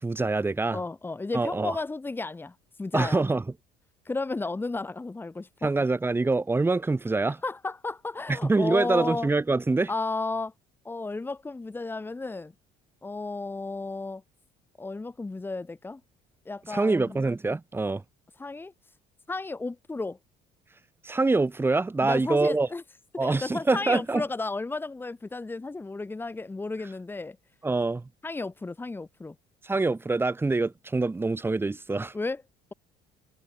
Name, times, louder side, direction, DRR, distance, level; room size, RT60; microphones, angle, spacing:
voice 1, 0.0-0.8 1.3-1.8 2.9-3.4 5.6-7.4 8.3-9.9 16.7-18.0 21.0-22.7 23.2-24.2 27.6-28.1 29.6-32.1, right 3 dB, 15° right, 6.8 m, -25 dB
voice 2, 0.7-3.2 4.0-5.7 7.4-9.3 9.9-10.5 10.8-12.5 13.0-14.2 14.8-16.0 16.4-17.2 18.4-18.7 19.3-20.2 22.0-22.8 23.2-27.4 28.2-29.3 32.1-32.4, left 3 dB, 15° left, 3.2 m, -33 dB
cardioid pair, 130°, 16 cm